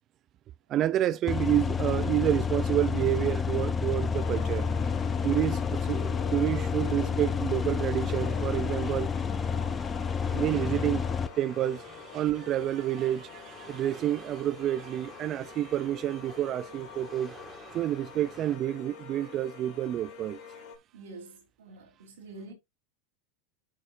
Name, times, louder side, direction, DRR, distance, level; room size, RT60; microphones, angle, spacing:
voice 1, 0.7-4.7 5.2-9.1 10.3-11.1 11.4-17.3 17.7-20.4, right 12 dB, 40° right, 0.5 m, -29 dB
sound 1, 1.3-11.3, left 6 dB, 20° left, 0.6 m, -29 dB
sound 2, 4.1-20.8, left 7 dB, 60° left, 1.9 m, -46 dB
sound 3, 7.8-18.6, right 3 dB, 15° right, 2.2 m, -51 dB
voice 2, 20.9-22.5, right 3 dB, 80° right, 3.6 m, -47 dB
9.2 x 6.2 x 2.6 m
hypercardioid pair, 100°, 0 cm